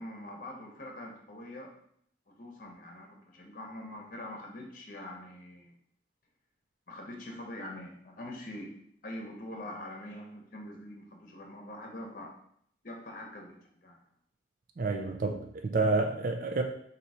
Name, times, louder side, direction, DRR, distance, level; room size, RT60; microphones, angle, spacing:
voice 1, 0.0-1.7 2.3-5.8 6.9-8.7 9.0-12.3 12.8-14.0, left 1 dB, 45° left, 1 dB, 0.9 m, -44 dB
voice 2, 14.8-16.6, right 3 dB, 45° right, 4 dB, 0.4 m, -29 dB
4.5 x 2.8 x 4.1 m, 0.68 s
head